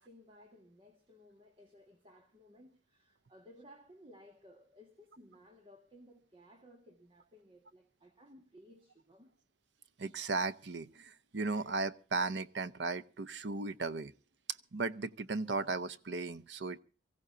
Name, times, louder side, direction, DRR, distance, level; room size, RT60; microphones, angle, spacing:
voice 1, 0.0-9.4, equal, 30° right, 1.7 m, -59 dB
voice 2, 10.0-14.1 14.7-16.8, right 3 dB, 85° right, 0.8 m, -36 dB
24.0 x 15.5 x 2.7 m
head